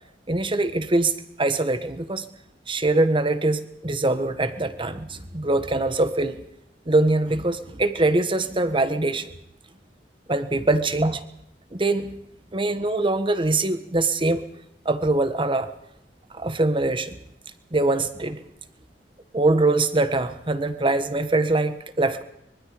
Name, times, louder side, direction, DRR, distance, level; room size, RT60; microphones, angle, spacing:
voice 1, 0.3-2.2 2.7-6.4 6.9-9.3 10.3-11.2 11.7-12.1 12.5-14.4 14.8-15.7 16.3-17.2 17.7-18.4 19.3-22.2, right 2 dB, 30° right, 11 dB, 1.4 m, -23 dB
24.5 x 23.5 x 5.2 m, 0.84 s
head